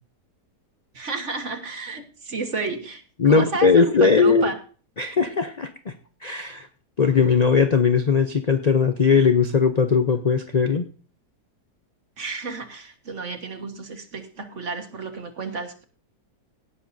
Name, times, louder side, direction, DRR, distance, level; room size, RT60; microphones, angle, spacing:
voice 1, 0.9-4.6 12.2-15.8, right 3 dB, 45° right, 7 dB, 1.7 m, -31 dB
voice 2, 3.2-4.5 5.0-5.9 6.2-6.7 7.0-10.9, left 5 dB, 50° left, 8 dB, 0.5 m, -19 dB
18.0 x 11.0 x 2.7 m, 0.39 s
omnidirectional pair, 1.8 m